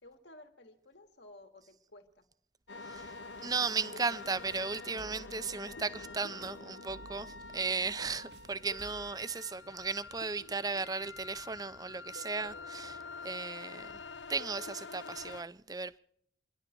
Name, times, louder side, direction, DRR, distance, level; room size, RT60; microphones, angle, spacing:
voice 1, 0.0-2.3, left 1 dB, 75° left, 2.4 m, -55 dB
sound 1, 2.7-15.4, left 4 dB, 90° left, 0.8 m, -46 dB
voice 2, 2.8-13.9 14.3-16.0, right 4 dB, 20° right, 0.5 m, -36 dB
sound 2, 4.1-9.1, right 3 dB, 75° right, 0.7 m, -57 dB
27.5 x 11.5 x 4.6 m
head